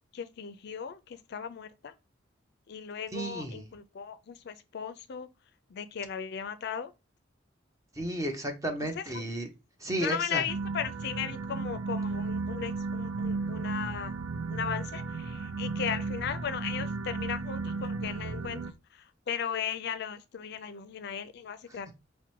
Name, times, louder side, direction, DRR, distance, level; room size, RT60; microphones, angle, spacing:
voice 1, 0.1-1.9 2.7-5.3 5.7-6.9 9.0-9.2 10.0-14.1 14.5-18.6 18.9-22.0, left 8 dB, 55° left, 0.4 m, -37 dB
voice 2, 3.1-3.6 8.0-9.5 9.8-10.4, right 1 dB, 15° right, 0.8 m, -33 dB
sound 1, 10.5-18.7, right 4 dB, 90° right, 0.5 m, -34 dB
4.7 x 2.1 x 4.4 m
head